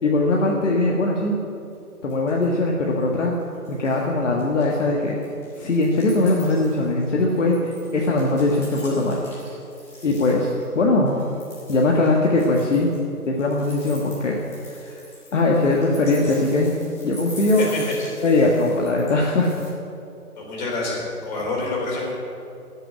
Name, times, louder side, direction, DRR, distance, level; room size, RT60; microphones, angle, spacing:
voice 1, 0.0-1.4 2.0-3.4 3.7-5.2 5.6-9.2 10.0-10.5 10.8-11.1 11.7-12.9 13.3-15.0 15.3-16.7 17.0-17.7 18.2-19.5, left 2 dB, 55° left, -2 dB, 1.7 m, -20 dB
sound 1, 1.7-1.8 2.1-2.7 3.0-4.1 4.4-10.7 11.1-19.7, left 1 dB, 5° left, 2.1 m, -44 dB
voice 2, 20.4-22.1, left 2 dB, 30° left, -3 dB, 3.8 m, -27 dB
13.5 x 6.7 x 9.2 m, 2.7 s
figure-of-eight pair, 155°, 45 cm